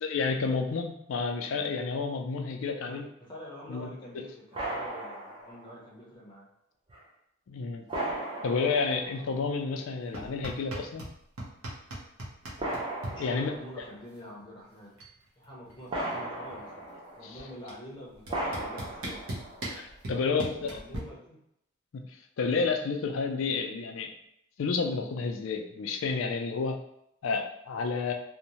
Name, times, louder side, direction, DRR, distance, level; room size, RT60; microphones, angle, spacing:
voice 1, 0.0-3.0 3.7-3.9 7.5-7.8 8.4-11.0 13.2-13.8 17.2-17.4 19.7-20.8 21.9-22.0 22.4-24.1 24.6-26.8 27.2-28.1, left 4 dB, 65° left, 4 dB, 0.4 m, -30 dB
voice 2, 2.8-6.5 13.1-15.0 15.4-16.7 17.2-19.2 20.0-21.4, equal, 20° left, -5 dB, 0.6 m, -46 dB
sound 1, 4.5-5.7 6.9-7.0 7.9-9.6 10.4-10.5 12.6-14.0 15.9-17.6 18.3-19.8, right 1 dB, 25° right, 0.5 m, -37 dB
sound 2, 10.1-11.1 11.4-13.1 14.4-14.5 14.8-15.2 15.4-16.8 17.7-17.8 18.3-21.0, right 1 dB, 80° right, 0.7 m, -38 dB
2.6 x 2.1 x 2.9 m, 0.76 s
head